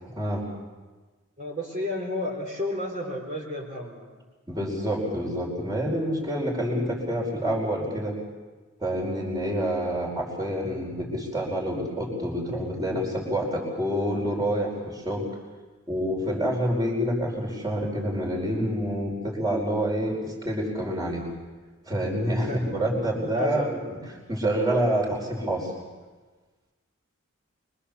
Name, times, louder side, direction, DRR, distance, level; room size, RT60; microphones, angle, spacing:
voice 1, 0.1-0.5 4.5-8.2 8.8-15.3 15.9-21.3 21.9-24.0 24.3-25.7, equal, 20° right, -1 dB, 5.0 m, -27 dB
voice 2, 1.4-4.2 5.2-5.4 22.4-22.6 23.3-23.8, left 1 dB, 35° right, -2 dB, 4.4 m, -32 dB
24.5 x 24.5 x 7.1 m, 1.3 s
head